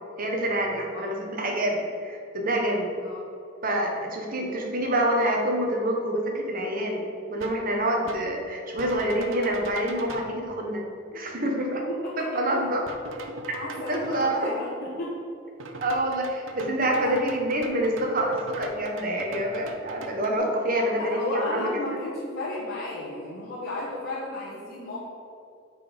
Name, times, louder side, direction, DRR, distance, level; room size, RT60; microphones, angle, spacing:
voice 1, 0.2-2.9 3.6-7.0 7.3-10.8 11.1-11.8 12.2-12.8 13.9-14.5 15.8-21.7, right 1 dB, 45° right, 1 dB, 1.3 m, -27 dB
sound 1, 7.4-7.7 8.1-8.3 8.8-10.3 12.9-14.2 15.6-20.3, right 2 dB, 80° right, 0.8 m, -41 dB
voice 2, 11.9-12.3 13.5-15.1 16.9-17.2 20.9-25.0, left 2 dB, 50° left, -7 dB, 1.3 m, -34 dB
8.8 x 4.5 x 5.2 m, 2.5 s
head